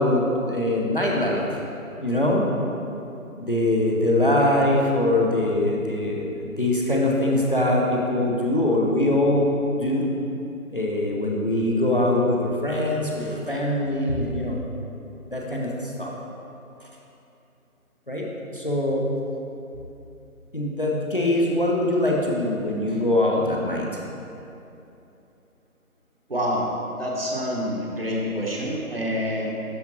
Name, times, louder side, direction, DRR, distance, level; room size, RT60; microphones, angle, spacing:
voice 1, 0.0-1.6 2.0-2.5 3.3-10.0 10.7-14.6 15.3-16.1 18.1-18.3 18.5-19.0 20.5-24.0, left 1 dB, 35° left, -2 dB, 0.7 m, -23 dB
voice 2, 26.3-26.6 27.0-29.5, equal, 40° right, -3 dB, 1.0 m, -27 dB
12.0 x 4.9 x 2.9 m, 2.8 s
figure-of-eight pair, 160°, 44 cm